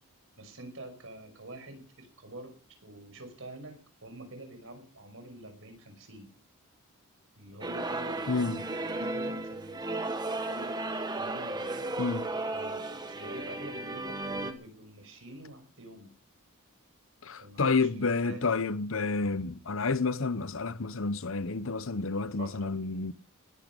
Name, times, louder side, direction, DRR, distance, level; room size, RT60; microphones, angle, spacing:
voice 1, 0.4-2.5 2.8-6.3 7.4-10.8 11.2-12.0 12.5-16.1 17.4-18.6 22.4-22.8, right 1 dB, 65° right, 5.8 m, -46 dB
sound 1, 7.6-14.5, right 2 dB, 20° right, 1.5 m, -34 dB
voice 2, 8.3-8.6 12.0-12.3 17.2-23.1, left 4 dB, 65° left, 0.9 m, -30 dB
19.5 x 11.0 x 5.4 m
head